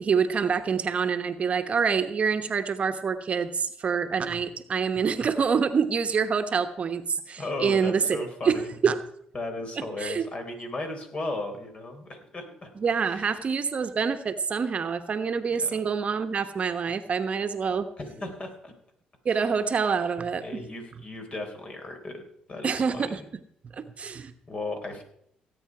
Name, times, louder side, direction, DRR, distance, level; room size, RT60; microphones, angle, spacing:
voice 1, 0.0-9.0 9.8-10.3 12.8-17.9 19.2-20.7 22.6-23.2 23.8-24.3, right 6 dB, 45° right, 9 dB, 1.0 m, -26 dB
voice 2, 7.4-8.7 9.3-12.7 13.0-13.3 15.6-15.8 18.0-18.7 19.3-19.4 20.4-22.2 22.5-23.2 24.5-25.0, left 2 dB, 40° left, 4 dB, 3.8 m, -36 dB
17.5 x 8.7 x 4.8 m, 0.70 s
supercardioid pair, 70°, 3 cm